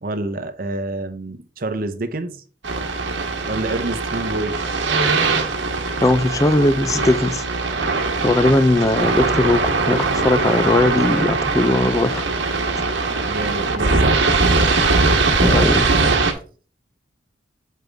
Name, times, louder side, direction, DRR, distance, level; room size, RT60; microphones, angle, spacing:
voice 1, 0.0-2.4 3.5-4.6 13.1-14.2 15.5-15.8, right 2 dB, 50° right, 0.7 m, -28 dB
sound 1, 2.6-16.3, right 3 dB, 85° right, 1.3 m, -21 dB
voice 2, 6.0-7.4 8.2-12.3 15.4-15.8, left 2 dB, 15° left, 0.4 m, -18 dB
7.6 x 5.2 x 3.4 m
head